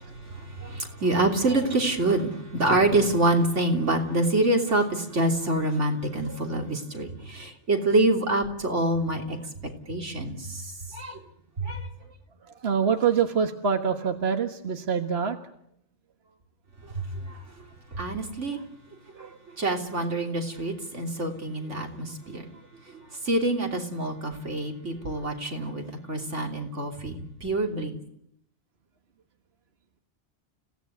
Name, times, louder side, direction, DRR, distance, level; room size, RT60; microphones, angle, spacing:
voice 1, 0.3-9.5 9.9-11.2 11.6-11.9 16.8-18.6 19.1-22.6 22.9-28.0, right 2 dB, 85° right, 3 dB, 3.6 m, -26 dB
voice 2, 12.6-15.4 19.2-19.4, right 6 dB, 60° right, 6 dB, 1.7 m, -25 dB
30.0 x 17.5 x 9.4 m, 0.75 s
omnidirectional pair, 1.2 m